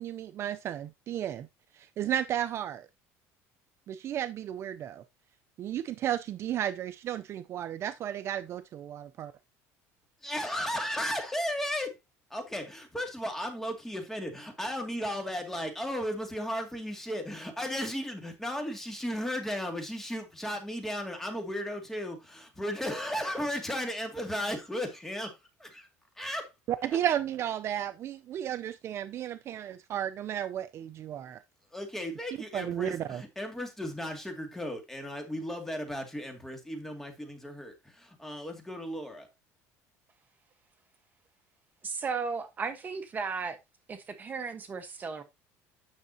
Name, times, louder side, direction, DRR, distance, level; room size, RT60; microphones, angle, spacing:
voice 1, 0.0-1.5 1.7-2.9 3.9-5.0 5.6-9.3 26.7-31.4 32.5-33.2, right 10 dB, 45° right, 0.5 m, -33 dB
voice 2, 10.2-12.0 12.3-25.9 26.2-26.5 26.8-27.0 31.7-39.3, equal, 5° left, 2.3 m, -35 dB
voice 3, 41.8-43.6 43.9-45.2, right 5 dB, 30° right, 1.2 m, -35 dB
9.5 x 6.5 x 2.8 m
cardioid pair, 125°, 6 cm